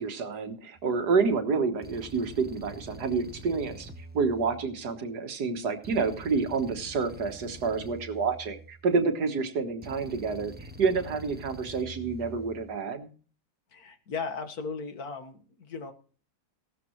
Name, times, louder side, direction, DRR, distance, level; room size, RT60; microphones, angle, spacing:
voice 1, 0.0-3.9 4.1-13.1, right 4 dB, 80° right, 6 dB, 2.0 m, -28 dB
sound 1, 0.8-1.0 1.8-5.1 5.8-9.1 9.8-12.8, right 1 dB, 10° right, 0.7 m, -46 dB
voice 2, 13.7-15.9, left 4 dB, 70° left, 8 dB, 2.0 m, -36 dB
16.0 x 13.0 x 3.1 m, 0.39 s
omnidirectional pair, 1.7 m